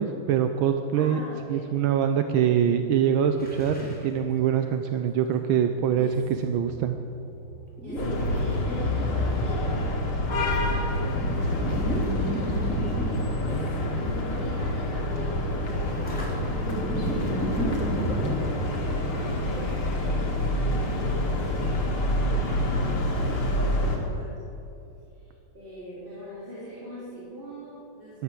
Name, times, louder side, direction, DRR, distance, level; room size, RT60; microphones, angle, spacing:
voice 1, 0.0-1.2 1.5-6.1 6.4-7.0 28.1-28.2, right 9 dB, 75° right, 7 dB, 1.4 m, -24 dB
voice 2, 0.9-1.7 5.9-6.2 7.8-24.4 25.1-28.2, equal, 25° right, -10 dB, 3.2 m, -41 dB
sound 1, 3.4-4.1 4.6-4.7 7.8-8.2 10.2-10.8 11.1-13.8 14.2-14.6 16.0-18.8, equal, 5° left, 3.5 m, -32 dB
sound 2, 5.9-19.3, right 1 dB, 45° left, 3.8 m, -47 dB
sound 3, 8.0-24.0, left 1 dB, 85° left, 2.9 m, -27 dB
12.5 x 11.5 x 7.4 m, 2.9 s
omnidirectional pair, 2.3 m